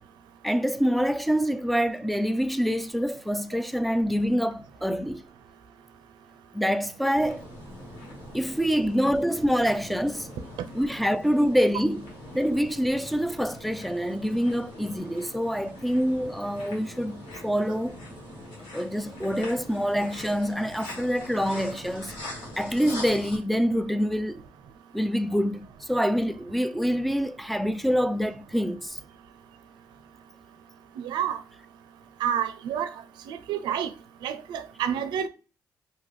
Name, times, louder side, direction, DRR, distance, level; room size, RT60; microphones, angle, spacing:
voice 1, 0.4-5.2 6.5-7.4 8.3-10.3 10.7-18.0 18.7-22.1 22.6-24.4 24.9-29.0, equal, ahead, 0.3 m, -26 dB
sound 1, 7.1-23.4, left 1 dB, 85° left, 1.2 m, -43 dB
voice 2, 31.0-31.4 32.2-32.9 33.3-33.9 34.2-35.3, right 9 dB, 75° right, 0.4 m, -29 dB
2.7 x 2.4 x 3.1 m
supercardioid pair, 60°, 8 cm